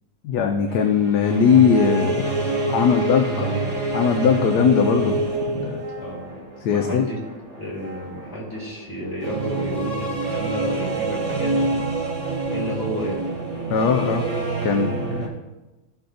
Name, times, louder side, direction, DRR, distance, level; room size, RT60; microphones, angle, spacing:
voice 1, 0.2-2.3 2.7-3.5 3.9-5.8 6.6-7.1 13.7-14.2 14.6-15.3, left 6 dB, 70° left, 4 dB, 1.2 m, -20 dB
sound 1, 0.7-15.3, right 3 dB, 60° right, 3.4 m, -27 dB
voice 2, 2.8-3.8 6.0-6.3 6.7-7.2 7.6-11.8 12.5-13.3, equal, 35° left, -5 dB, 3.4 m, -31 dB
15.5 x 6.2 x 2.6 m, 1.1 s
omnidirectional pair, 2.0 m